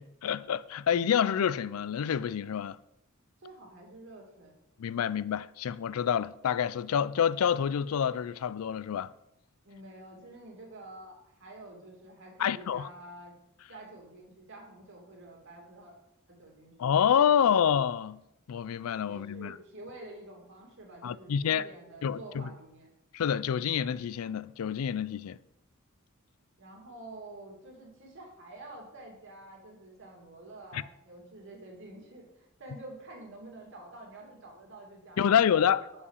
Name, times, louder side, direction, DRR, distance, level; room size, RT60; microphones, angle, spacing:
voice 1, 0.0-2.8 4.8-9.1 12.4-12.9 16.8-18.2 18.5-19.6 21.0-21.7 22.0-22.5 23.1-25.4 30.7-30.8 35.2-35.8, left 8 dB, 85° left, 0.4 m, -27 dB
voice 2, 3.4-4.6 9.6-13.4 13.7-15.9 16.3-16.7 17.4-17.7 19.1-22.9 26.6-35.7 35.9-36.1, right 2 dB, 65° right, 2.6 m, -48 dB
7.4 x 5.6 x 6.4 m
head